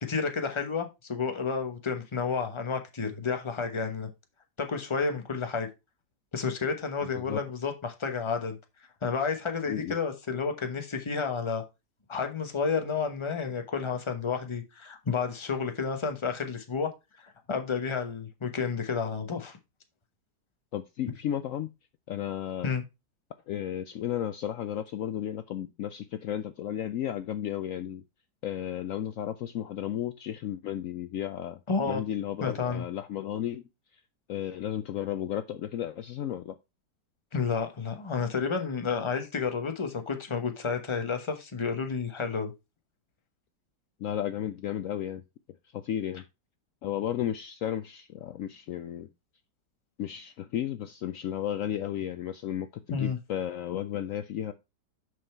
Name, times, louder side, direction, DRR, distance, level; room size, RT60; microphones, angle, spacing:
voice 1, 0.0-4.1 4.6-5.7 6.3-8.6 9.0-11.6 12.1-16.9 17.2-19.6 22.6-22.8 31.7-32.0 32.4-32.9 37.3-42.5 52.9-53.2, left 5 dB, 20° left, 0.9 m, -31 dB
voice 2, 20.7-21.7 22.1-22.7 23.5-28.0 28.4-31.6 31.9-33.6 34.3-36.6 44.0-45.2 45.7-46.2 46.8-49.1 50.0-54.5, left 11 dB, 70° left, 0.7 m, -33 dB
6.4 x 5.5 x 4.4 m
omnidirectional pair, 1.8 m